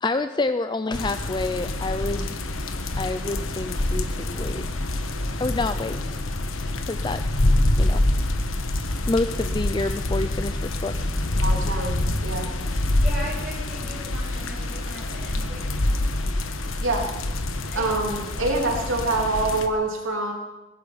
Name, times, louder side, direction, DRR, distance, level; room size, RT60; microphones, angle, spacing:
voice 1, 0.0-2.4 3.0-4.7 4.9-6.2 6.9-7.2 7.8-8.0 9.1-11.1, left 2 dB, 20° left, 10 dB, 0.5 m, -28 dB
sound 1, 0.9-19.7, left 1 dB, 75° left, 1.3 m, -26 dB
voice 2, 11.3-12.0 12.2-12.5 16.8-17.1 17.7-20.3, right 2 dB, 70° right, 1 dB, 2.9 m, -25 dB
voice 3, 13.0-15.7 17.7-17.9, left 1 dB, 5° right, -6 dB, 8.0 m, -38 dB
18.5 x 10.5 x 7.1 m, 1.1 s
head